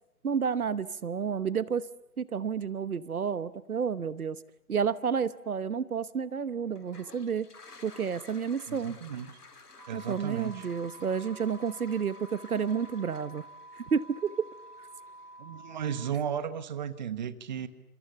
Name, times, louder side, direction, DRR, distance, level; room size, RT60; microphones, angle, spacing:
voice 1, 0.2-1.9 2.2-4.4 4.7-7.5 7.8-9.0 9.9-13.5 13.7-14.5 14.8-14.9, right 6 dB, 70° right, 17 dB, 1.1 m, -30 dB
Toilet flush, 6.7-15.6, left 3 dB, 80° left, 2.6 m, -54 dB
voice 2, 8.7-9.3 9.9-10.7 15.4-17.7, right 8 dB, 30° right, 14 dB, 1.2 m, -34 dB
sound 1, 9.8-16.0, right 1 dB, 85° right, 6.5 m, -50 dB
29.5 x 27.5 x 6.9 m, 0.84 s
figure-of-eight pair, 145°, 46 cm